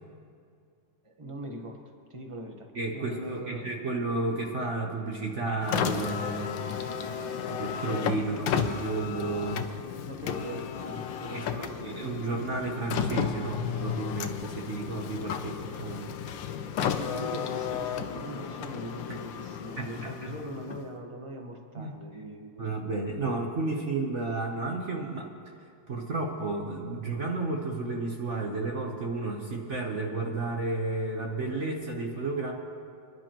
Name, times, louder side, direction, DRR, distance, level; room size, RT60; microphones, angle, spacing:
voice 1, 1.0-3.8 10.1-12.0 16.8-22.9, right 1 dB, 20° right, 2 dB, 0.8 m, -41 dB
voice 2, 2.7-6.6 7.4-9.6 11.3-16.2 19.8-20.3 21.8-21.9 22.6-25.3 25.9-32.5, right 3 dB, 45° right, 1 dB, 1.0 m, -32 dB
Car, 5.6-21.0, left 8 dB, 70° left, 1.3 m, -33 dB
29.0 x 11.0 x 3.0 m, 2.4 s
omnidirectional pair, 2.3 m